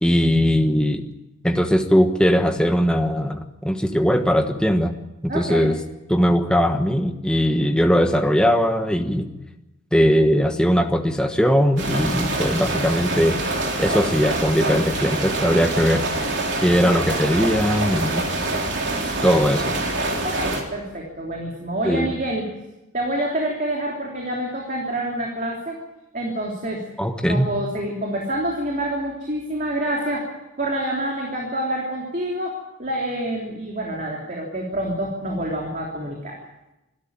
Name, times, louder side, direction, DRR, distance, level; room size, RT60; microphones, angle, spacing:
voice 1, 0.0-1.1 1.4-4.9 5.2-5.8 6.1-9.3 9.9-13.4 13.8-16.0 16.6-18.2 19.2-19.7 21.8-22.1 27.0-27.5, equal, 5° left, 5 dB, 1.2 m, -19 dB
voice 2, 5.3-5.7 20.2-22.4 22.9-25.8 26.1-26.8 27.2-30.3 30.6-36.4, right 1 dB, 35° right, -1 dB, 3.3 m, -27 dB
sound 1, 11.8-20.6, right 2 dB, 50° right, 3.6 m, -25 dB
25.5 x 13.0 x 8.8 m, 0.97 s
head